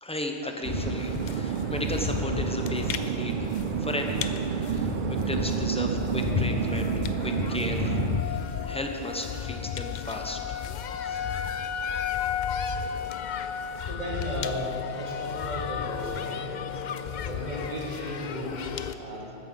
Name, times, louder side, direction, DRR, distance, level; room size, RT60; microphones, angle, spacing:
voice 1, 0.0-3.5 3.8-8.4 8.7-10.7 11.0-11.2 11.7-11.8, left 1 dB, 5° left, 3 dB, 0.8 m, -35 dB
sound 1, 0.6-19.0, left 7 dB, 55° left, 0.5 m, -33 dB
sound 2, 0.6-8.2, right 7 dB, 60° right, 0.6 m, -30 dB
voice 2, 13.9-16.4 17.1-19.4, equal, 40° right, -7 dB, 3.2 m, -35 dB
14.0 x 9.5 x 5.4 m, 3.0 s
omnidirectional pair, 1.1 m